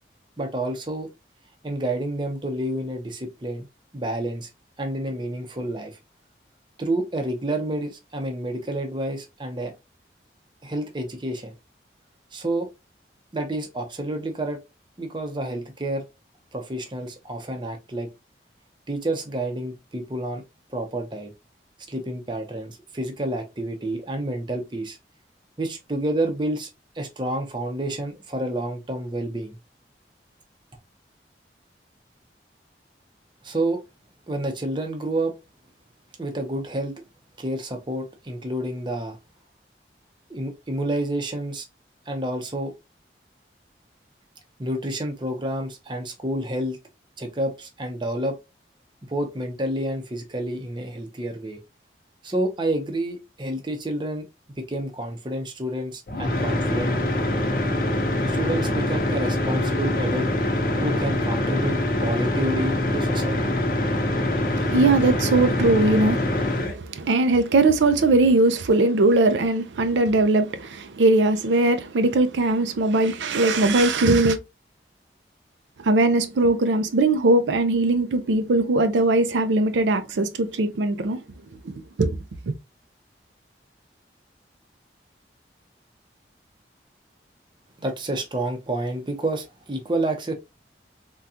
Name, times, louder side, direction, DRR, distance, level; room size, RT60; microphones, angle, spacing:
voice 1, 0.4-1.1 1.6-3.7 3.9-4.5 4.8-6.0 6.8-9.7 10.6-11.5 12.3-12.7 13.3-14.6 15.0-16.0 16.5-18.1 18.9-20.4 20.7-21.3 21.9-25.0 25.6-26.7 26.9-29.6 33.4-33.8 34.3-35.3 36.2-37.0 37.4-39.2 40.3-41.7 42.1-42.7 44.6-46.8 47.2-48.4 49.0-51.6 52.2-54.3 54.6-57.0 58.3-60.2 60.7-63.6 87.8-90.3, right 1 dB, 25° right, 0.6 m, -29 dB
sound 1, 56.1-66.7, left 1 dB, 50° left, 0.7 m, -24 dB
voice 2, 64.5-74.4 75.8-81.2 81.6-82.2, right 2 dB, 85° right, 0.5 m, -20 dB
3.6 x 2.3 x 2.7 m
head